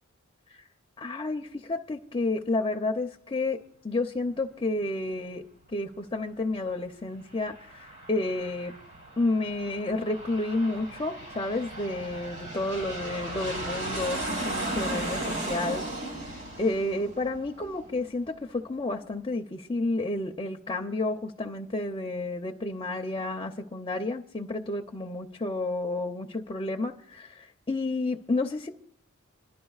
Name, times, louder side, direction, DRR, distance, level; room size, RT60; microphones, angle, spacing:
voice 1, 1.0-3.6 3.8-5.4 5.7-8.7 9.2-16.3 16.6-28.7, left 2 dB, 25° left, 4 dB, 0.5 m, -31 dB
Aircraft, 7.2-18.3, right 1 dB, 65° right, 5.1 m, -36 dB
27.0 x 11.5 x 2.4 m, 0.66 s
head